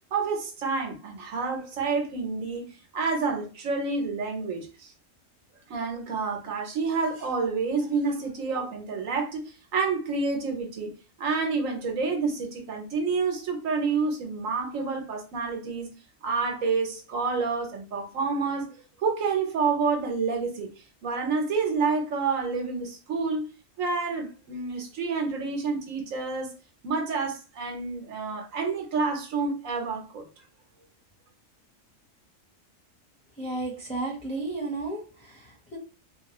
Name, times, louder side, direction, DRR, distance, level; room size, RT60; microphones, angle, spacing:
voice 1, 0.1-4.9 5.7-10.9 11.2-15.9 16.2-18.7 19.0-20.7 21.0-23.4 23.8-26.5 26.8-30.3, right 4 dB, 80° right, 1.2 m, -28 dB
voice 2, 33.4-35.3 35.7-35.8, right 2 dB, 5° left, 0.9 m, -32 dB
3.1 x 2.3 x 2.9 m
omnidirectional pair, 1.4 m